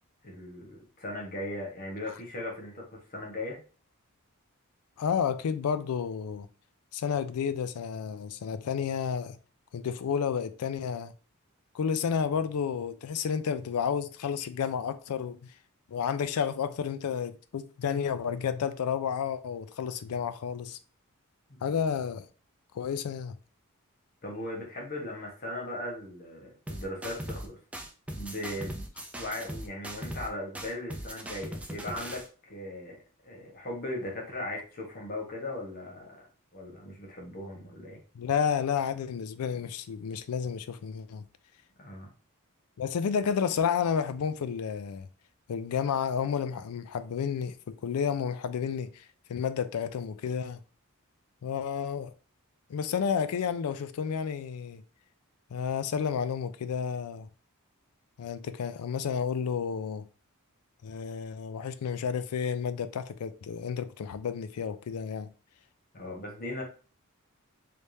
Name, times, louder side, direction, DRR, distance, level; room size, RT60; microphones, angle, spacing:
voice 1, 0.2-3.6 24.2-27.6 28.1-28.9 29.2-33.0 33.2-36.2 36.5-38.0 41.8-42.1 65.9-66.6, left 1 dB, 45° left, 1.2 m, -38 dB
voice 2, 5.0-6.5 6.9-9.4 9.7-11.1 11.7-15.5 15.9-20.8 21.6-22.3 22.7-23.4 38.2-41.2 42.8-45.1 45.5-49.0 49.3-50.6 51.4-52.1 52.7-54.8 55.5-57.3 58.2-60.1 60.8-65.3, left 7 dB, 85° left, 0.4 m, -31 dB
sound 1, 26.7-27.5 27.7-30.3 30.5-32.3, right 1 dB, 5° right, 0.4 m, -39 dB
3.3 x 3.3 x 2.7 m
head